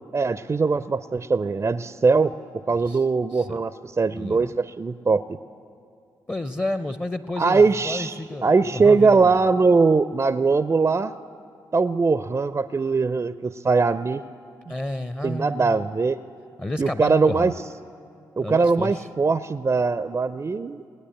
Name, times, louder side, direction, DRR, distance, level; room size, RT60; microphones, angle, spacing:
voice 1, 0.1-2.3 2.7-5.4 7.4-11.1 11.7-14.2 15.2-16.2 16.8-17.5 18.4-20.8, right 4 dB, 30° right, 14 dB, 0.4 m, -21 dB
voice 2, 4.1-4.5 6.3-9.4 14.7-15.8 16.6-17.5 18.4-18.9, left 1 dB, 15° left, 12 dB, 0.6 m, -31 dB
18.5 x 9.7 x 7.8 m, 2.4 s
hypercardioid pair, 40°, 10 cm